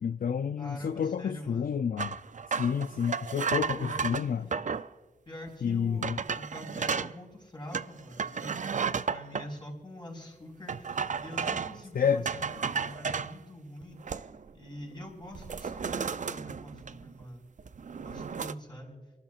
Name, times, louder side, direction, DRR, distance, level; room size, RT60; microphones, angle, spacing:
voice 1, 0.0-2.2 2.5-4.4 5.6-6.2 11.9-12.2, left 7 dB, 65° left, 9 dB, 0.4 m, -29 dB
voice 2, 0.6-1.7 3.6-4.5 5.2-17.4 17.9-19.0, equal, 30° left, -1 dB, 4.7 m, -45 dB
sound 1, 2.0-4.9 5.5-5.6 6.0-7.1 7.7-9.5 10.7-11.8 12.3-13.3 13.8-14.5 14.8-15.0 15.3-17.2 17.6-18.5, right 6 dB, 50° right, 0.4 m, -33 dB
29.0 x 12.5 x 2.4 m, 1.2 s
wide cardioid pair, 70°, 16 cm